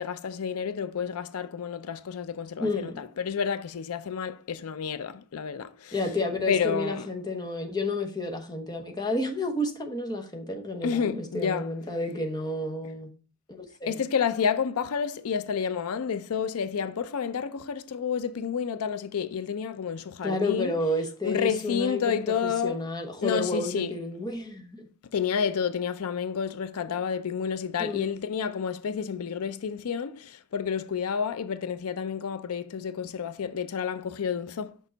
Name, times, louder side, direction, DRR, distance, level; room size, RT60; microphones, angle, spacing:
voice 1, 0.0-5.9 6.5-7.1 10.8-11.7 13.9-20.7 21.2-22.8 23.2-23.9 25.1-34.8, left 7 dB, 90° left, 0.5 m, -30 dB
voice 2, 2.6-3.0 5.9-13.1 13.5-14.0 20.2-24.8 27.8-28.2, left 2 dB, 20° left, 1.0 m, -31 dB
6.3 x 5.4 x 3.9 m
head